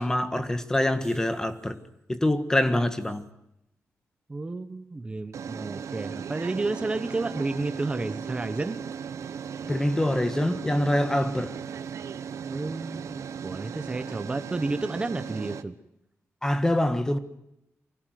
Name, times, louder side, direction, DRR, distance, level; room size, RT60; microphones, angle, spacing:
voice 1, 0.0-1.8 2.1-3.3 9.7-11.5 16.4-17.2, left 1 dB, 10° left, 1.6 m, -25 dB
sound 1, 1.0-1.4 3.1-3.2 5.3-15.6, right 7 dB, 85° right, 1.1 m, -37 dB
voice 2, 4.3-8.8 11.2-11.3 12.4-15.8, right 3 dB, 20° right, 1.1 m, -31 dB
24.5 x 17.0 x 9.4 m
wide cardioid pair, 155°, 5 cm